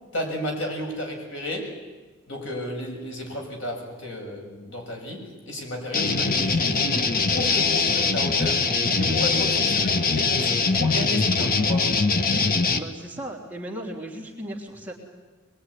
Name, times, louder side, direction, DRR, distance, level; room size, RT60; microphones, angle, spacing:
voice 1, 0.1-1.7 2.3-7.0 7.3-8.6 8.9-11.9, left 1 dB, 65° left, 2 dB, 6.9 m, -32 dB
sound 1, 5.9-12.8, left 4 dB, 45° left, 1.5 m, -22 dB
voice 2, 12.8-14.9, right 1 dB, 10° right, -1 dB, 3.2 m, -36 dB
24.5 x 22.0 x 9.9 m, 1.3 s
head